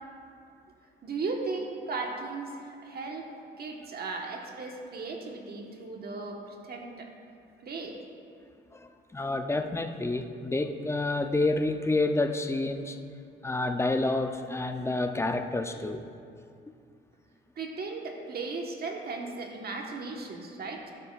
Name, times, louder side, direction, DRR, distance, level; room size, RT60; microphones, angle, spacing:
voice 1, 1.0-3.3 3.6-7.1 7.6-8.0 17.6-20.9, right 3 dB, 50° right, 1 dB, 1.4 m, -36 dB
voice 2, 8.7-13.0 13.4-16.1, left 2 dB, 15° left, 7 dB, 0.6 m, -29 dB
12.0 x 11.5 x 2.5 m, 2.4 s
cardioid pair, 90°, 20 cm